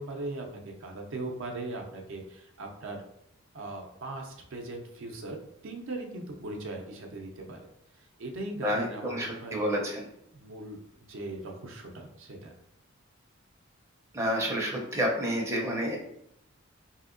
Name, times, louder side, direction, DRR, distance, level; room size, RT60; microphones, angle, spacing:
voice 1, 0.0-3.0 3.5-7.6 8.2-9.7 10.3-10.8 11.1-12.5, right 2 dB, 65° right, 2 dB, 0.5 m, -39 dB
voice 2, 8.6-10.1 14.1-16.0, equal, 15° right, -2 dB, 0.5 m, -29 dB
3.4 x 2.7 x 2.5 m, 0.75 s
head